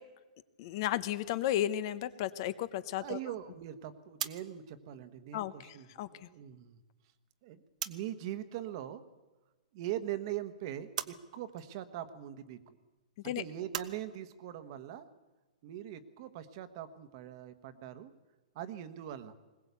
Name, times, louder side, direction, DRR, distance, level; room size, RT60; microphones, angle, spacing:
voice 1, 0.6-3.2 5.3-6.3 13.2-13.4, left 12 dB, 35° left, 15 dB, 0.7 m, -34 dB
voice 2, 3.0-6.8 7.4-9.0 9.7-12.8 13.2-15.1 15.6-18.1 18.5-19.3, right 12 dB, 35° right, 11 dB, 1.3 m, -42 dB
sound 1, 4.0-8.3 8.5-9.6 10.0-13.9, right 9 dB, 60° right, 1.1 m, -44 dB
21.0 x 18.5 x 8.3 m, 1.2 s
hypercardioid pair, 165°, 4 cm